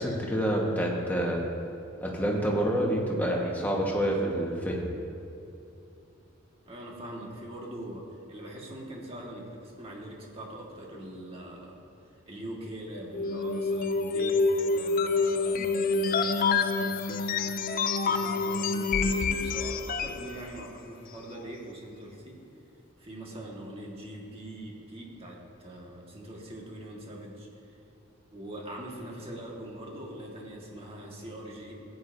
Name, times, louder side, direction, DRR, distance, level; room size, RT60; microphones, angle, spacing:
voice 1, 0.0-1.4 2.0-4.9, equal, 10° left, -2 dB, 1.3 m, -27 dB
voice 2, 6.6-11.8 12.3-17.3 18.0-22.4 23.0-27.5 28.3-31.8, right 1 dB, 30° right, -2 dB, 1.6 m, -42 dB
sound 1, 13.1-20.3, left 4 dB, 45° left, 0.4 m, -27 dB
16.0 x 9.0 x 2.7 m, 2.7 s
head